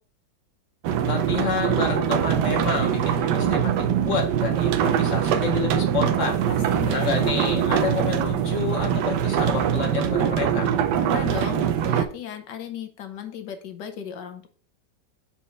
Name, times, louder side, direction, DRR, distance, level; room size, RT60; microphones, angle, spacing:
sound 1, 0.8-12.1, right 9 dB, 80° right, 1.2 m, -23 dB
voice 1, 1.1-6.4 6.9-10.7, left 5 dB, 45° left, 2 dB, 1.6 m, -29 dB
voice 2, 6.5-7.3 11.0-14.5, left 8 dB, 75° left, 6 dB, 1.5 m, -36 dB
4.4 x 4.3 x 5.5 m, 0.43 s
omnidirectional pair, 1.9 m